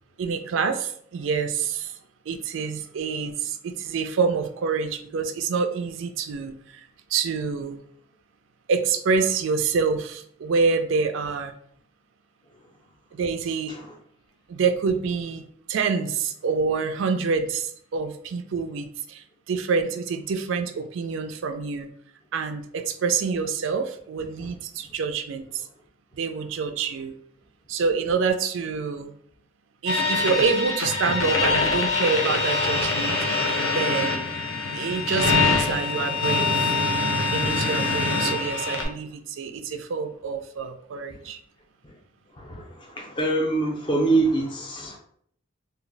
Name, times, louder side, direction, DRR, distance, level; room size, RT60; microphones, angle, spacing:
voice 1, 0.2-1.9 2.3-6.8 7.1-7.8 8.7-11.5 13.1-13.7 14.5-21.9 22.3-25.6 26.2-27.1 27.7-29.1 29.8-33.5 33.7-34.2 34.7-36.7 37.3-41.4, right 5 dB, 70° right, 8 dB, 0.3 m, -27 dB
sound 1, 29.9-38.8, left 3 dB, 80° left, 0.6 m, -24 dB
voice 2, 37.4-38.2 41.2-41.3 41.8-42.0 42.3-45.0, right 2 dB, 25° left, 1 dB, 0.4 m, -26 dB
2.3 x 2.1 x 3.8 m, 0.63 s
head